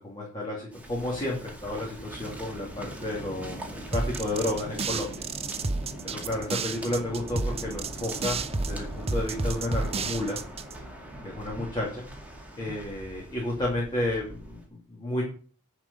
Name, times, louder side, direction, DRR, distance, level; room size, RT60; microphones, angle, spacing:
voice 1, 0.0-5.2 6.0-8.4 8.7-10.4 11.2-12.1 12.6-15.2, left 1 dB, 20° left, -4 dB, 2.7 m, -31 dB
Waves surf, 0.7-14.7, right 1 dB, 5° right, 2.2 m, -41 dB
sound 1, 3.9-10.7, right 3 dB, 25° right, 0.7 m, -31 dB
10.5 x 5.0 x 6.8 m, 0.41 s
head